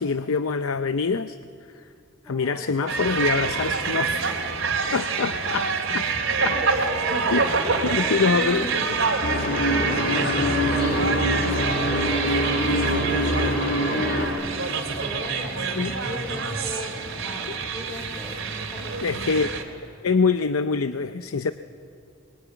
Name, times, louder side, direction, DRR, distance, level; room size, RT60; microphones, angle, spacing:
voice 1, 0.0-1.4 1.7-1.8 2.3-4.2 4.9-5.6 5.9-6.1 6.4-6.6 7.3-7.4 7.8-8.7 15.8-15.9 17.5-17.6 19.0-19.5 20.0-21.5, left 4 dB, 85° left, 10 dB, 0.6 m, -24 dB
voice 2, 2.2-3.4 4.6-4.9 5.7-14.6 15.0-19.4, equal, 10° left, -3 dB, 3.4 m, -38 dB
sound 1, 2.9-19.6, right 4 dB, 75° right, 3.0 m, -27 dB
sound 2, 9.2-14.3, left 1 dB, 50° left, 4.7 m, -24 dB
26.5 x 22.0 x 9.3 m, 2.4 s
head